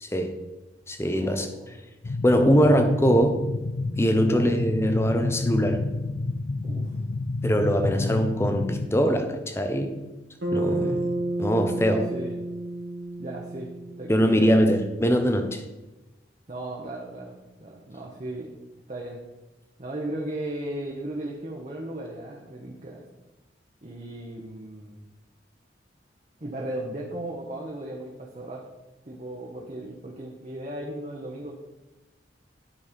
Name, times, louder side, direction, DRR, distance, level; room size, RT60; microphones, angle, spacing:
voice 1, 0.0-0.4 0.9-1.5 2.2-3.4 4.0-5.9 7.4-10.1 10.5-11.1 11.4-12.1 14.1-15.6, equal, 15° left, 6 dB, 0.7 m, -22 dB
voice 2, 1.1-1.8 4.2-4.6 6.6-7.0 8.0-8.2 10.8-11.0 11.9-12.4 13.2-13.7 14.0-14.6 16.5-18.5 18.9-19.2 19.8-23.0 23.8-25.0 26.4-28.6 29.0-31.5, right 1 dB, 35° right, -2 dB, 0.9 m, -36 dB
sound 1, 2.0-8.9, left 3 dB, 50° left, 0.4 m, -29 dB
Bass guitar, 10.4-14.8, right 1 dB, 70° right, 1.5 m, -31 dB
9.8 x 4.2 x 5.1 m, 1.1 s
head